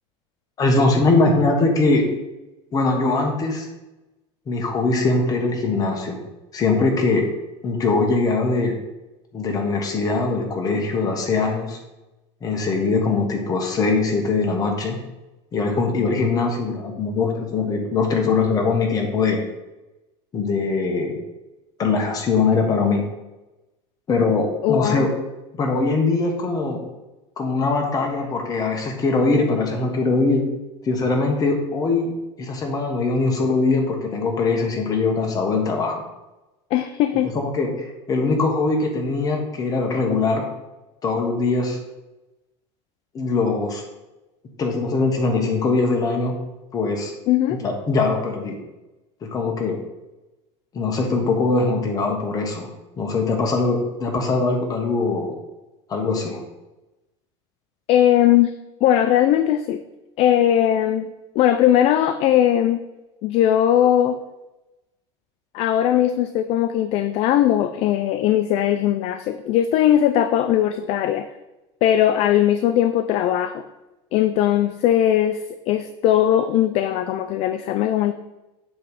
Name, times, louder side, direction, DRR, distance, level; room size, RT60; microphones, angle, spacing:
voice 1, 0.6-2.0 2.7-3.7 4.5-6.2 6.5-7.2 7.6-8.8 9.3-11.8 12.4-15.0 15.5-19.4 20.3-21.2 21.8-23.0 24.1-25.1 25.6-26.8 27.4-30.5 30.8-32.1 32.4-36.0 37.3-40.4 41.0-41.8 43.1-43.8 44.6-46.3 46.7-47.1 47.5-48.6 49.2-49.8 50.7-52.7 53.0-55.3 55.9-56.4, left 3 dB, 25° left, 1 dB, 1.3 m, -21 dB
voice 2, 24.6-25.1 36.7-37.3 47.3-47.6 57.9-58.5 58.8-59.8 60.2-62.8 63.2-64.2 65.5-71.3 71.8-73.6 74.1-75.4 75.7-78.1, left 11 dB, 45° left, 10 dB, 0.3 m, -19 dB
7.7 x 3.2 x 5.4 m, 1.0 s
supercardioid pair, 140°, 15 cm